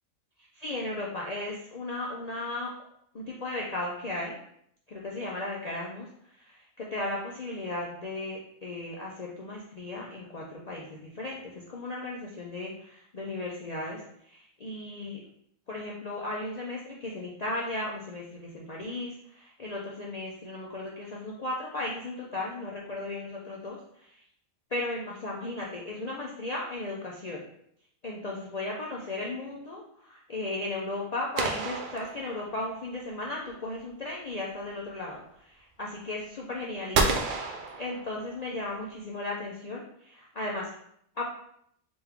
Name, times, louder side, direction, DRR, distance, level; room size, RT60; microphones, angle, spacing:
voice 1, 0.4-2.7 3.1-4.4 4.9-15.2 15.7-24.2 24.7-27.4 28.0-40.7 41.2-41.3, left 2 dB, 70° left, -3 dB, 0.3 m, -36 dB
sound 1, 31.4-32.8 36.9-38.5, right 4 dB, 90° right, 0.4 m, -30 dB
3.4 x 3.0 x 3.5 m, 0.70 s
omnidirectional pair, 1.4 m